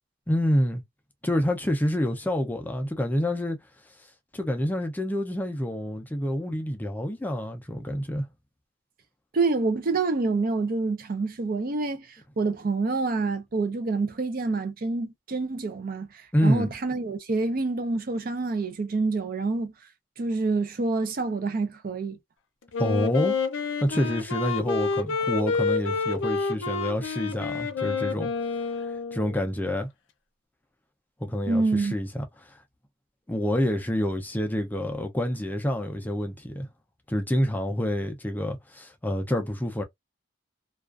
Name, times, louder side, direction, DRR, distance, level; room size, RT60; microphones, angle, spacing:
voice 1, 0.3-0.8 1.2-3.6 4.3-8.3 16.3-16.7 22.8-23.4 23.8-28.3 28.8-29.9 31.2-32.6 33.3-36.7 37.1-39.8, equal, 10° left, 0.4 m, -27 dB
voice 2, 9.3-19.7 20.2-22.2 31.5-32.0, right 3 dB, 50° right, 0.5 m, -27 dB
Wind instrument woodwind instrument, 22.7-29.4, left 4 dB, 80° left, 0.6 m, -28 dB
2.3 x 2.3 x 2.3 m
head